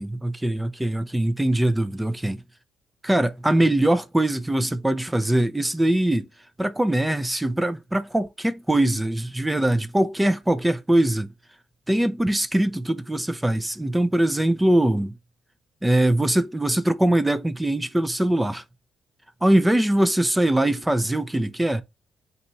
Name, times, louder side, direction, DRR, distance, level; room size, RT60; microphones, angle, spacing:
voice 1, 0.0-2.4 3.0-6.3 6.6-11.3 11.9-15.1 15.8-18.6 19.4-21.8, right 1 dB, 10° right, 0.6 m, -22 dB
4.1 x 2.5 x 4.3 m
supercardioid pair, 60°, 0 cm